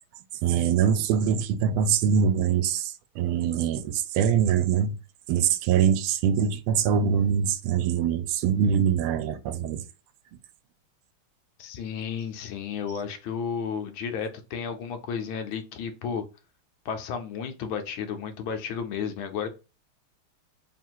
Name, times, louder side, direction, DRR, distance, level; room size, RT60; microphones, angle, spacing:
voice 1, 0.4-4.9 5.3-9.8, right 8 dB, 85° right, 1.5 m, -23 dB
voice 2, 11.6-16.3 16.8-19.5, left 6 dB, 75° left, 1.4 m, -32 dB
3.7 x 2.4 x 4.4 m
omnidirectional pair, 2.3 m